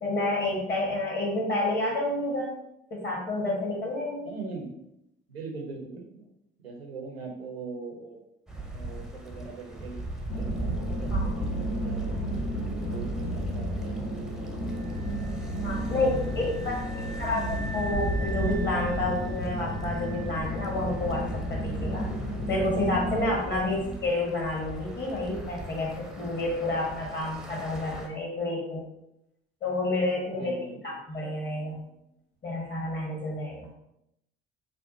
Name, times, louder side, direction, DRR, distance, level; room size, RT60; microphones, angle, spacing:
voice 1, 0.0-2.6 2.9-4.3 11.1-11.4 15.6-16.8 17.2-22.0 22.5-28.8 29.6-30.5 30.8-31.9 32.4-33.7, left 2 dB, 35° left, -2 dB, 1.4 m, -29 dB
voice 2, 4.2-4.7 5.3-6.3 6.6-8.2 8.7-10.1 10.4-12.2 12.8-14.8 16.6-17.3 23.3-23.4 23.7-23.9 30.3-30.8, right 4 dB, 85° right, 2 dB, 0.6 m, -42 dB
sound 1, 8.5-28.1, right 2 dB, ahead, 0.6 m, -38 dB
sound 2, 10.3-23.2, equal, 55° left, 1.0 m, -32 dB
sound 3, 14.7-21.5, right 2 dB, 75° left, 0.7 m, -44 dB
5.0 x 2.3 x 2.7 m, 0.82 s
figure-of-eight pair, 50°, 30 cm